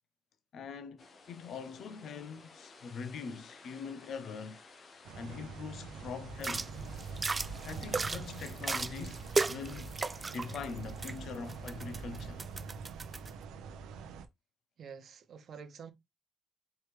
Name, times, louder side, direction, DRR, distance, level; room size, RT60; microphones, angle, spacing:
voice 1, 0.5-4.6 5.2-6.8 7.6-9.9 10.3-12.4, left 5 dB, 70° left, 0.6 m, -43 dB
sound 1, 1.0-12.2, left 3 dB, 45° left, 1.1 m, -57 dB
sound 2, 5.0-14.3, right 5 dB, 90° right, 0.7 m, -45 dB
sound 3, 6.3-13.3, right 3 dB, 25° right, 0.3 m, -37 dB
voice 2, 14.8-15.9, right 6 dB, 60° right, 1.1 m, -48 dB
4.8 x 3.2 x 3.2 m
cardioid pair, 90°, 0 cm